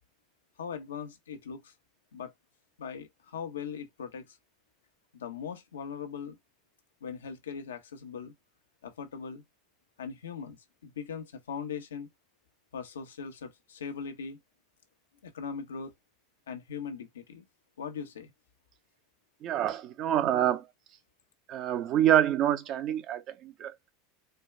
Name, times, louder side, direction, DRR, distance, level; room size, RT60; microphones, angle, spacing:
voice 1, 0.6-1.7 2.1-2.3 2.8-4.4 5.1-6.4 7.0-8.3 8.8-9.4 10.0-12.1 12.7-14.4 15.2-15.9 16.5-17.5 17.8-18.3, left 6 dB, 90° left, 1.0 m, -40 dB
voice 2, 19.4-20.6 21.5-23.9, right 11 dB, 45° right, 0.7 m, -27 dB
4.4 x 2.3 x 3.2 m
hypercardioid pair, 100°, 0 cm